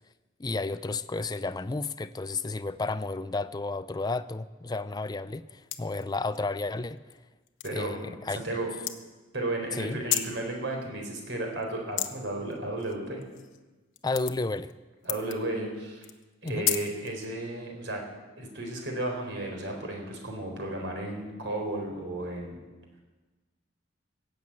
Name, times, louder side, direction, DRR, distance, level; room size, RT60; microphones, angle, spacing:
voice 1, 0.4-7.0 7.7-8.4 9.7-10.0 14.0-14.7 16.4-16.7, left 3 dB, 20° left, 13 dB, 0.5 m, -32 dB
sound 1, 5.6-6.4 7.0-7.2 7.5-7.7 8.8-8.9 9.9-10.4 11.5-12.1 12.5-13.6 13.9-14.7 15.0-15.3 16.0-17.3, left 12 dB, 80° left, 1.0 m, -32 dB
voice 2, 7.6-8.7 9.3-13.2 15.0-16.0 16.4-18.0 18.4-22.6, right 1 dB, 65° right, 1 dB, 4.2 m, -34 dB
19.0 x 7.9 x 8.8 m, 1.3 s
head